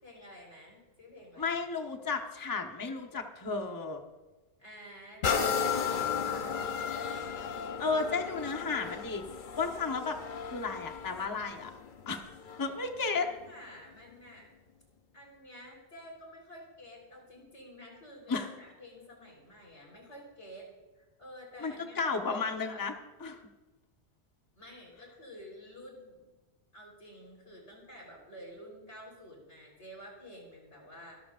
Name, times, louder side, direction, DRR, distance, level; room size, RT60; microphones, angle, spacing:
voice 1, 0.0-1.5 4.6-6.9 13.0-14.5 15.1-20.7 20.9-22.8 24.6-26.3 26.7-31.2, equal, 80° left, -1 dB, 4.4 m, -50 dB
voice 2, 1.4-4.0 7.8-9.2 9.6-10.2 10.4-11.7 12.1-12.2 12.6-13.3 18.3-18.5 21.6-22.9 23.2-23.4, left 4 dB, 20° left, 3 dB, 1.0 m, -33 dB
sound 1, 5.2-12.8 13.4-13.5, left 6 dB, 50° left, 0.9 m, -34 dB
24.5 x 13.0 x 2.5 m, 1.2 s
omnidirectional pair, 1.1 m